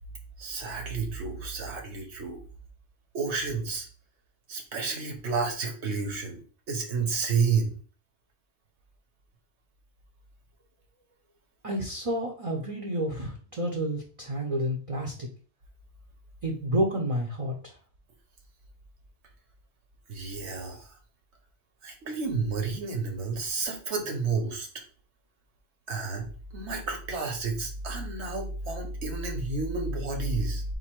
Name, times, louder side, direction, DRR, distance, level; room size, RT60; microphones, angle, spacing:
voice 1, 0.4-2.4 3.1-3.9 4.5-6.4 6.7-7.7 20.1-20.9 21.8-24.7 25.9-26.3 26.5-30.6, right 4 dB, 75° right, 3 dB, 1.3 m, -30 dB
voice 2, 11.6-15.3 16.4-17.8, equal, 35° right, 0 dB, 0.7 m, -30 dB
4.0 x 2.7 x 4.4 m, 0.40 s
omnidirectional pair, 1.1 m